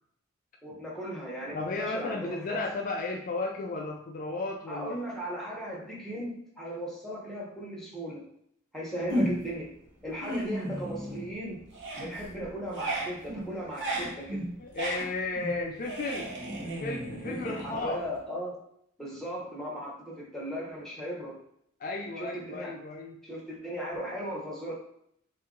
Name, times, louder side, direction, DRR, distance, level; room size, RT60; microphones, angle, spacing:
voice 1, 0.6-2.6 4.7-8.2 8.7-9.7 10.0-11.6 12.0-14.4 17.2-18.6 19.0-21.4 22.2-22.7 23.2-24.7, equal, ahead, -5 dB, 1.1 m, -37 dB
voice 2, 1.5-5.0 14.6-16.3 16.6-18.1 21.8-23.2, left 3 dB, 40° left, 2 dB, 0.3 m, -34 dB
sound 1, 9.1-9.6 10.0-11.4 11.7-18.2, right 1 dB, 60° right, 1.0 m, -34 dB
3.9 x 2.6 x 3.8 m, 0.71 s
head